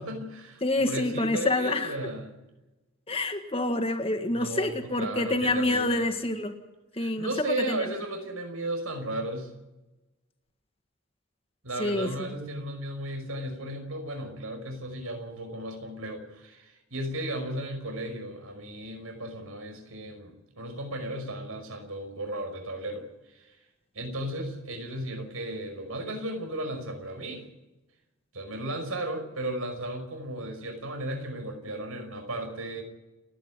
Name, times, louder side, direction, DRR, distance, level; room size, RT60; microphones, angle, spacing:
voice 1, 0.0-2.3 4.3-6.1 7.0-9.5 11.6-23.6 23.9-27.4 28.3-32.8, right 1 dB, 85° right, 5 dB, 5.5 m, -35 dB
voice 2, 0.6-2.0 3.1-6.6 7.0-7.9 11.8-12.1, left 2 dB, 25° left, 7 dB, 1.8 m, -27 dB
29.5 x 10.0 x 9.7 m, 1.0 s
head